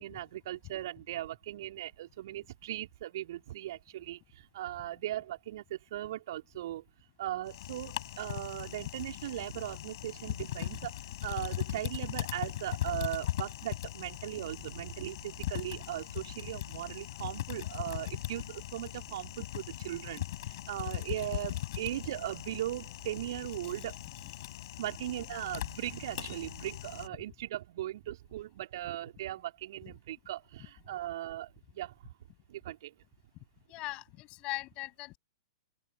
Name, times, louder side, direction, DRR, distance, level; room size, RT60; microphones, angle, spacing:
voice 1, 0.0-6.8 7.2-24.0 24.8-31.9 32.5-32.9, right 13 dB, 50° right, 3.8 m, -38 dB
Typing, 7.5-27.1, left 14 dB, 50° left, 6.3 m, -39 dB
voice 2, 33.7-35.2, left 21 dB, 35° left, 7.8 m, -40 dB
open air
figure-of-eight pair, 105°, 3 cm